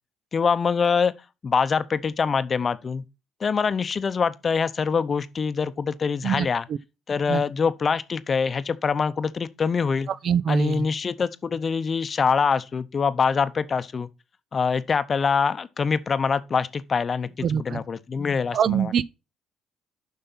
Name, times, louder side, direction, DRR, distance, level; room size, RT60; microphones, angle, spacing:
voice 1, 0.3-1.1 1.4-3.0 3.4-6.6 7.1-10.1 10.5-14.1 14.5-18.9, left 5 dB, 40° left, 0.7 m, -24 dB
voice 2, 10.1-10.9 17.4-17.8 18.5-19.0, right 8 dB, 55° right, 0.4 m, -24 dB
7.7 x 5.7 x 4.1 m
hypercardioid pair, 50°, 0 cm